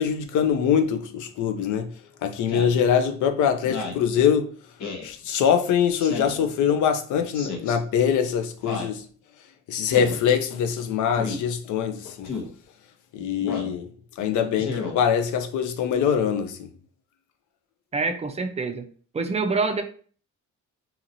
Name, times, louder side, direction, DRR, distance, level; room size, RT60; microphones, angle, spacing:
voice 1, 0.0-1.9 2.2-4.5 5.0-9.0 9.7-12.3 13.1-13.9 14.2-16.6, left 8 dB, 80° left, 0.5 m, -23 dB
Speech synthesizer, 2.5-2.8 3.6-4.0 4.8-5.1 6.0-6.4 7.3-7.8 8.6-9.0 9.9-10.2 11.1-11.4 12.2-12.5 13.4-13.7 14.6-15.0, left 4 dB, 65° left, 0.8 m, -32 dB
voice 2, 17.9-18.9 19.1-19.8, right 4 dB, 20° right, 0.4 m, -26 dB
2.9 x 2.8 x 2.6 m
cardioid pair, 90°, 30 cm